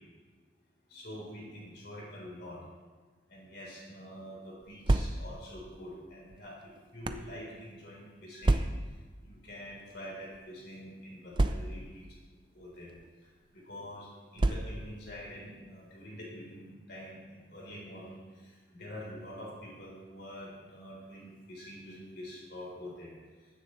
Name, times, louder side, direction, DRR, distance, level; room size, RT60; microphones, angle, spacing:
voice 1, 0.9-2.6 3.3-6.6 6.9-8.6 9.2-12.1 12.5-12.9 13.5-18.2 18.7-23.1, equal, 60° left, -4 dB, 3.8 m, -46 dB
sound 1, 4.6-5.5 6.3-7.3 8.4-9.0 9.9-10.1 10.3-10.4 11.3-12.0 12.9-13.1 14.4-15.0, right 2 dB, 25° right, 0.4 m, -29 dB
15.0 x 10.0 x 3.2 m, 1.4 s
head